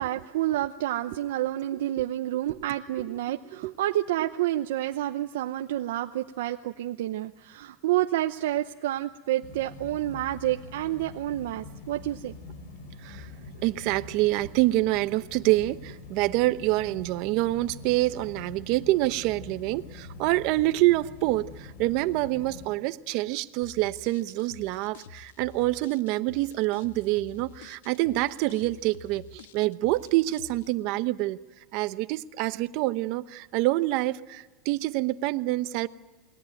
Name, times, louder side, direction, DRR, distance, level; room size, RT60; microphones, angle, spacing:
voice 1, 0.0-12.3, right 14 dB, 80° right, 0.8 m, -29 dB
sound 1, 9.4-22.7, left 3 dB, 70° left, 6.1 m, -44 dB
voice 2, 13.6-31.4 31.7-35.9, right 18 dB, 55° right, 1.0 m, -26 dB
sound 2, 23.6-30.7, left 8 dB, 85° left, 1.4 m, -49 dB
29.0 x 21.0 x 9.1 m
supercardioid pair, 145°, 0 cm